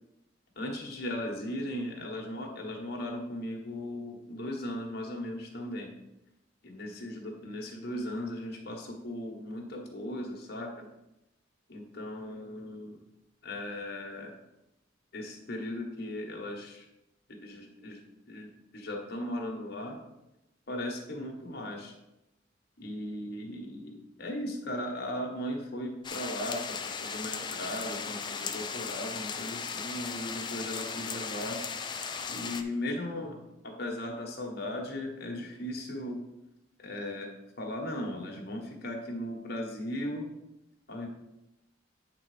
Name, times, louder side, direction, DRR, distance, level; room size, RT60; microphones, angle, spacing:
voice 1, 0.5-5.9 6.6-10.9 11.7-13.0 13.4-14.3 15.1-16.8 17.3-18.0 18.3-20.0 20.7-21.9 22.8-31.6 32.3-36.2 36.8-37.3 37.6-40.2 40.9-41.1, left 1 dB, 55° left, 0 dB, 1.4 m, -37 dB
sound 1, 26.0-32.6, left 5 dB, 25° left, 0.4 m, -37 dB
8.8 x 3.9 x 4.9 m, 0.91 s
head